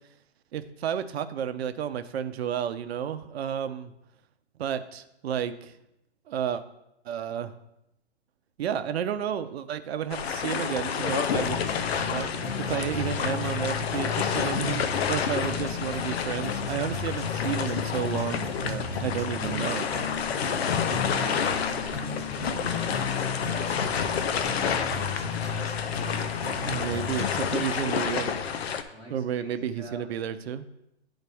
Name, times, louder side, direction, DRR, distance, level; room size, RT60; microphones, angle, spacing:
voice 1, 0.5-3.9 4.6-5.7 6.3-6.6 7.0-7.5 8.6-11.6 12.0-12.3 12.6-19.9 26.7-28.4 29.1-30.6, right 9 dB, 65° right, 11 dB, 0.7 m, -31 dB
sound 1, 10.1-28.8, left 7 dB, 65° left, 0.8 m, -30 dB
sound 2, 11.4-27.4, left 5 dB, 90° left, 1.6 m, -34 dB
voice 2, 21.1-24.3 26.6-27.8 28.9-30.1, right 1 dB, 15° left, -3 dB, 2.4 m, -49 dB
10.5 x 4.0 x 3.4 m, 0.85 s
hypercardioid pair, 130°, 34 cm